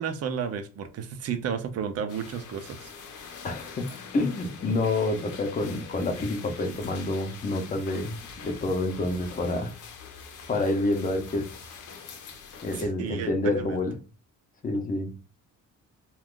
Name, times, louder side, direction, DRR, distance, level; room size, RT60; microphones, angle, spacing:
voice 1, 0.0-2.9 3.2-3.4 12.8-13.3 13.6-13.8, right 7 dB, 55° right, 8 dB, 0.6 m, -32 dB
sound 1, 2.1-12.8, left 6 dB, 75° left, 0.7 m, -44 dB
voice 2, 3.4-3.9 4.1-9.7 10.5-11.5 12.6-13.9 14.6-15.1, left 2 dB, 25° left, 4 dB, 0.7 m, -28 dB
2.4 x 2.4 x 3.6 m, 0.32 s
cardioid pair, 130°, 30 cm